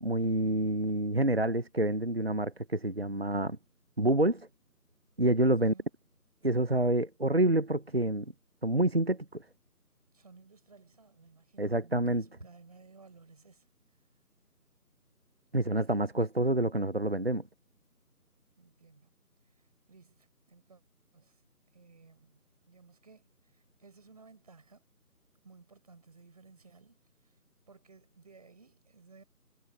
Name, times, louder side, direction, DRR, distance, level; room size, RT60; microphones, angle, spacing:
voice 1, 0.0-3.6 4.0-4.5 5.2-5.7 6.4-8.3 8.6-9.4 11.6-12.2 15.5-17.4, right 1 dB, 40° right, 0.8 m, -27 dB
voice 2, 5.6-5.9 10.1-13.7 15.6-16.2 18.6-19.1 19.6-20.8 21.1-21.4 21.7-24.8 25.4-27.0 27.2-27.3 27.7-29.2, right 4 dB, 25° right, 4.7 m, -57 dB
figure-of-eight pair, 165°, 47 cm